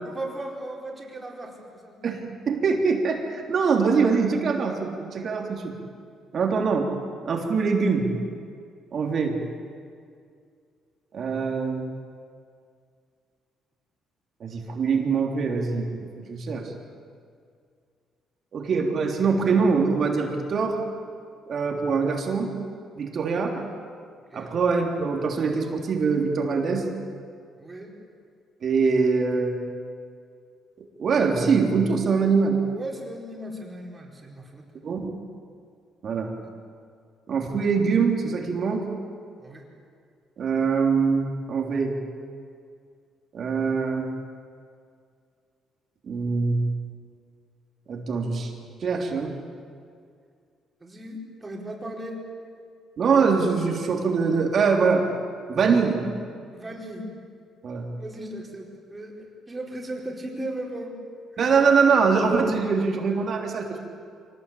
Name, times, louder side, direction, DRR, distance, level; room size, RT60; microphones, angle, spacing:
voice 1, 0.0-1.9 24.3-24.5 27.6-27.9 32.7-34.6 39.4-39.6 50.8-52.2 56.5-57.1 58.0-61.0, right 1 dB, 20° right, -1 dB, 4.6 m, -37 dB
voice 2, 2.0-5.7 6.3-6.9 7.2-8.1 8.9-9.4 11.1-11.8 14.4-15.9 16.3-16.7 18.5-20.8 21.5-22.5 23.0-23.7 24.3-26.9 28.6-29.6 31.0-32.6 34.8-35.1 36.0-36.3 37.3-38.9 40.4-42.0 43.3-44.1 46.1-46.7 47.9-48.5 48.8-49.3 53.0-55.1 55.5-56.1 57.6-57.9 61.4-63.8, right 5 dB, 50° right, 2 dB, 3.3 m, -23 dB
24.5 x 18.5 x 8.6 m, 2.2 s
cardioid pair, 110°, 0 cm